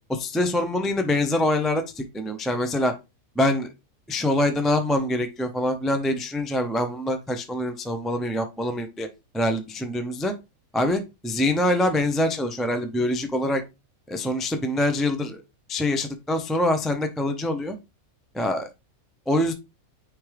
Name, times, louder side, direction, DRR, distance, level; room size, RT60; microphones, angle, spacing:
voice 1, 0.1-2.9 3.4-3.7 4.1-9.1 9.3-10.3 10.7-13.6 14.1-15.4 15.7-17.8 18.3-18.7 19.3-19.5, left 1 dB, ahead, 6 dB, 0.4 m, -24 dB
9.4 x 3.6 x 3.4 m, 0.26 s
omnidirectional pair, 1.6 m